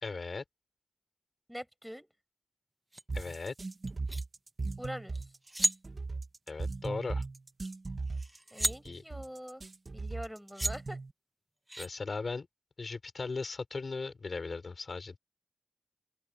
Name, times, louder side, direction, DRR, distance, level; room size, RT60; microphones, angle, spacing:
voice 1, 0.0-0.4 3.1-3.5 6.5-7.2 8.8-9.0 11.8-12.5 12.8-15.2, left 4 dB, 75° left, 4.9 m, -37 dB
voice 2, 1.5-2.1 4.8-5.2 8.5-9.6 9.9-11.0, equal, ahead, 7.3 m, -43 dB
sound 1, 2.9-3.0 3.9-4.2 5.2-5.3 5.4-5.8 7.7-7.8 8.1-8.8 10.1-10.2 10.5-10.7 11.7-11.9, right 1 dB, 15° right, 2.3 m, -32 dB
sound 2, 3.1-11.1, right 3 dB, 65° right, 2.7 m, -38 dB
cardioid pair, 50°, 0 cm